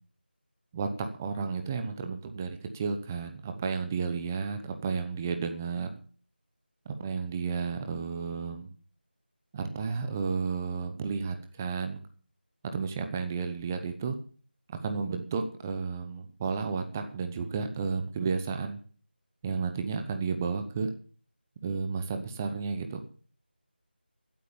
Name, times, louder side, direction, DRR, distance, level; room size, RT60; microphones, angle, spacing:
voice 1, 0.7-5.9 7.0-8.7 9.5-12.0 12.7-14.2 14.7-18.8 19.4-20.9 21.6-23.0, right 5 dB, 15° right, 7 dB, 0.9 m, -32 dB
14.0 x 8.4 x 7.2 m, 0.43 s
figure-of-eight pair, 170°, 6 cm